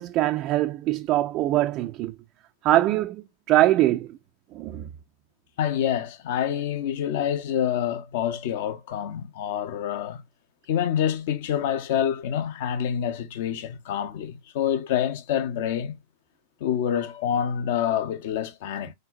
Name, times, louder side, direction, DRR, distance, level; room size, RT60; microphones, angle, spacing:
voice 1, 0.0-2.1 2.6-4.2 4.5-4.9, right 15 dB, 40° right, 0.3 m, -23 dB
voice 2, 5.6-10.2 10.7-16.0 16.6-18.9, left 9 dB, 50° left, 0.6 m, -27 dB
4.3 x 3.6 x 2.4 m
figure-of-eight pair, 90°, 0 cm